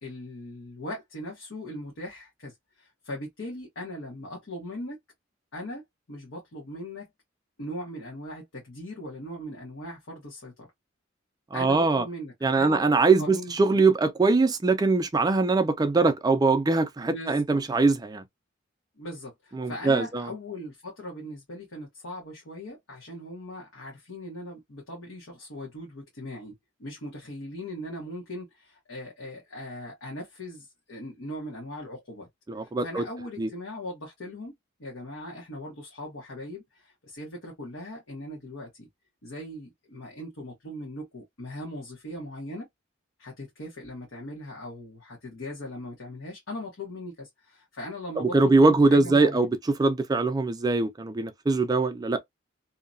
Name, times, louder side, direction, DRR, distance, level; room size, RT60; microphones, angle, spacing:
voice 1, 0.0-5.0 5.5-5.8 6.1-7.1 7.6-10.7 11.5-12.8 13.2-13.5 17.0-17.6 19.0-26.5 26.8-32.3 32.6-34.5 34.8-38.9 39.2-42.7 43.2-49.5, left 1 dB, 90° left, 1.1 m, -39 dB
voice 2, 11.5-12.0 12.4-18.2 19.6-20.3 32.5-33.0 33.4-33.5 48.2-49.5 49.8-52.2, right 3 dB, 20° right, 0.3 m, -22 dB
2.7 x 2.2 x 2.5 m
head